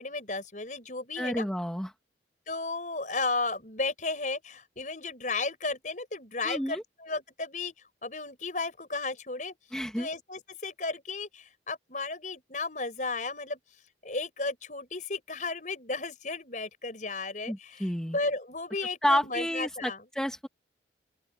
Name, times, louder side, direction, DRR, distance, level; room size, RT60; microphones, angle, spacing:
voice 1, 0.0-1.5 2.5-7.7 8.0-9.6 10.0-13.6 14.0-20.0, left 3 dB, 45° left, 5.8 m, -34 dB
voice 2, 1.2-1.9 6.4-6.8 9.7-10.1 17.5-18.2 19.0-20.5, equal, 5° left, 2.2 m, -30 dB
open air
head